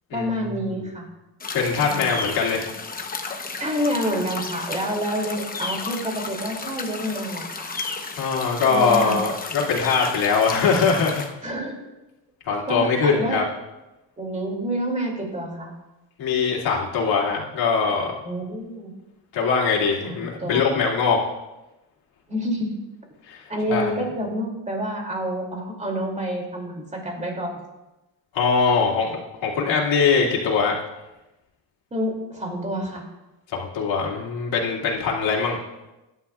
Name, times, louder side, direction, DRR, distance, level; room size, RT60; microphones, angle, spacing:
voice 1, 0.1-1.1 1.8-2.2 3.6-7.7 8.7-9.2 11.4-11.8 12.7-13.4 14.2-15.7 18.2-18.9 20.0-20.7 22.3-22.8 23.5-27.6 31.9-33.1, equal, 15° right, 0 dB, 2.7 m, -28 dB
sound 1, 1.4-11.3, left 4 dB, 20° left, 0.9 m, -33 dB
voice 2, 1.5-2.6 8.1-11.2 12.4-13.4 16.2-18.1 19.3-21.2 23.3-23.4 23.7-23.9 28.3-30.8 33.5-35.6, left 5 dB, 75° left, -4 dB, 2.7 m, -22 dB
19.5 x 11.0 x 2.4 m, 1.0 s
cardioid pair, 140°, 46 cm